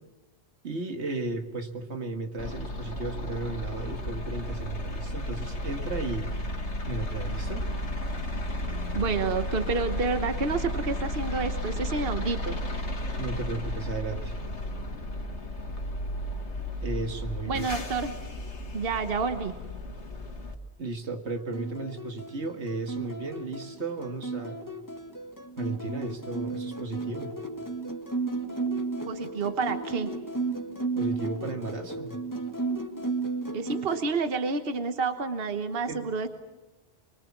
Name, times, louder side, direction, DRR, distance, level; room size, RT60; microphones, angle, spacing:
voice 1, 0.6-6.3 6.9-7.6 13.2-14.4 16.8-17.7 20.8-24.6 25.6-27.3 30.9-32.2 35.9-36.1, right 3 dB, 90° right, 6 dB, 2.1 m, -35 dB
sound 1, 2.4-20.5, left 1 dB, 85° left, 2.1 m, -33 dB
voice 2, 8.9-12.6 17.5-18.2 18.7-19.5 29.0-30.1 33.5-36.3, right 4 dB, 60° right, 8 dB, 1.4 m, -29 dB
sound 2, 21.5-34.0, right 3 dB, 15° left, 1.9 m, -34 dB
25.0 x 23.0 x 7.3 m, 1.1 s
omnidirectional pair, 1.1 m